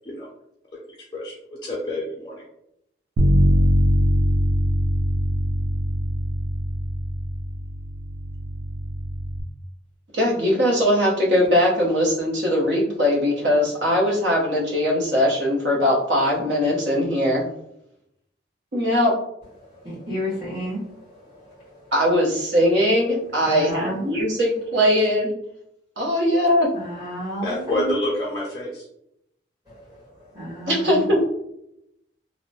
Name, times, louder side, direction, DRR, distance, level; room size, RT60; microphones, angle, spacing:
voice 1, 0.9-1.3 1.6-2.4 27.4-28.9, left 1 dB, 25° left, 0.4 m, -28 dB
Bass guitar, 3.2-9.4, equal, 90° right, 0.3 m, -22 dB
voice 2, 10.1-17.4 18.7-19.1 21.9-25.3 26.0-26.7 30.7-31.2, equal, 65° right, 0.8 m, -20 dB
voice 3, 19.6-21.9 23.4-24.0 26.7-27.9 29.7-31.0, equal, 20° right, 1.0 m, -32 dB
2.7 x 2.1 x 2.7 m
head